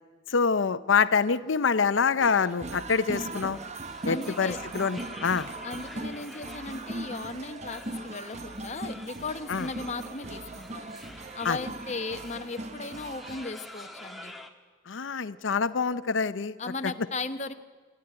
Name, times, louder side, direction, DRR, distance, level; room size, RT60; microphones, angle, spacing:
voice 1, 0.3-3.6 4.0-5.5 9.5-9.7 11.4-11.6 14.9-16.5, left 5 dB, 90° left, 14 dB, 0.6 m, -26 dB
sound 1, 2.2-13.5, right 2 dB, 35° right, 0.8 m, -39 dB
sound 2, 3.2-14.5, left 1 dB, ahead, 1.4 m, -47 dB
voice 2, 4.1-4.6 5.6-10.9 11.3-14.3 16.6-17.5, left 3 dB, 35° left, 8 dB, 0.9 m, -36 dB
27.0 x 12.0 x 9.7 m, 1.4 s
head